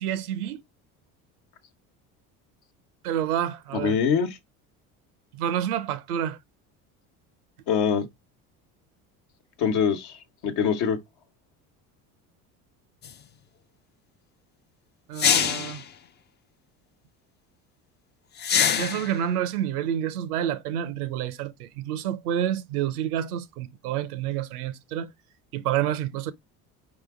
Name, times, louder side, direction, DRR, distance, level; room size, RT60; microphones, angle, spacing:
voice 1, 0.0-0.6 3.0-4.0 5.3-6.4 15.1-15.8 18.7-25.1 25.5-26.3, right 10 dB, 85° right, 0.7 m, -28 dB
voice 2, 3.7-4.4 7.7-8.1 9.6-11.0, left 7 dB, 60° left, 1.1 m, -24 dB
sound 1, 13.0-13.1 15.2-15.8 18.4-19.2, left 8 dB, 25° left, 0.4 m, -23 dB
4.8 x 3.0 x 3.6 m
hypercardioid pair, 75°, 44 cm